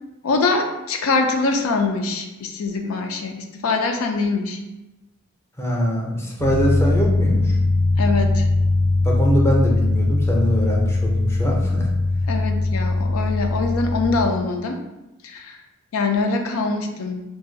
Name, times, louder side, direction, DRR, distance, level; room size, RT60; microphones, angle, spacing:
voice 1, 0.2-4.6 8.0-8.5 12.3-14.8 15.2-15.6 15.9-17.2, left 3 dB, 85° left, 4 dB, 0.4 m, -23 dB
voice 2, 5.6-7.6 9.0-11.9, equal, 10° left, -2 dB, 0.5 m, -22 dB
sound 1, 6.4-14.2, left 2 dB, 65° right, 0.4 m, -20 dB
2.5 x 2.3 x 3.7 m, 1.0 s
head